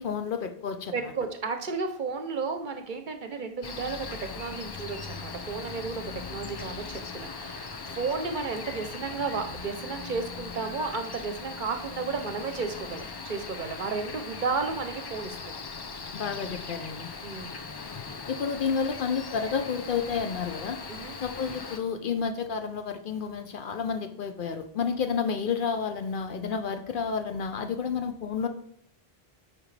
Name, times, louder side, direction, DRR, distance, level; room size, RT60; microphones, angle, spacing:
voice 1, 0.0-0.9 16.1-17.1 18.3-20.8 21.2-28.5, left 6 dB, 60° left, 7 dB, 0.7 m, -30 dB
voice 2, 0.9-6.0 6.3-15.4 17.2-17.6 20.9-21.2, right 4 dB, 55° right, 7 dB, 0.8 m, -33 dB
Cricket, 3.6-21.8, left 4 dB, 40° left, 0.3 m, -39 dB
8.6 x 5.0 x 3.2 m, 0.65 s
omnidirectional pair, 1.1 m